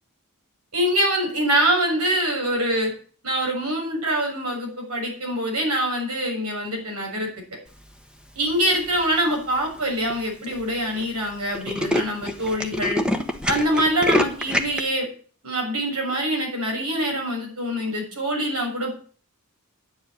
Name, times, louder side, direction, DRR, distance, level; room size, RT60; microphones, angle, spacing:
voice 1, 0.7-2.9 3.2-7.6 8.4-13.0 13.4-15.1 15.4-19.0, right 1 dB, 90° right, 0 dB, 6.7 m, -24 dB
Tools, 8.7-9.2 9.8-9.9 10.1-10.2 10.4-10.6 10.9-11.1 11.3-14.8, left 1 dB, 5° right, 1.3 m, -25 dB
10.5 x 7.8 x 9.6 m, 0.44 s
head